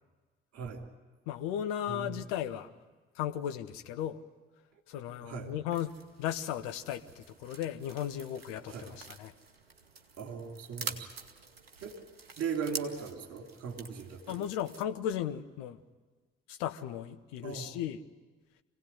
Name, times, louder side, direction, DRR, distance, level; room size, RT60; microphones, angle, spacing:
voice 1, 1.3-2.7 3.2-4.2 4.9-5.9 6.2-9.3 14.3-15.8 16.5-18.0, left 10 dB, 70° left, 8 dB, 1.0 m, -36 dB
voice 2, 1.9-2.2 5.2-5.5 8.6-8.9 10.2-11.1 11.8-12.0 12.4-14.5 17.4-17.7, right 6 dB, 55° right, 2 dB, 3.1 m, -38 dB
sound 1, 5.7-14.8, right 4 dB, 85° right, 0.8 m, -47 dB
26.0 x 17.0 x 9.6 m, 1.3 s
figure-of-eight pair, 40°, 29 cm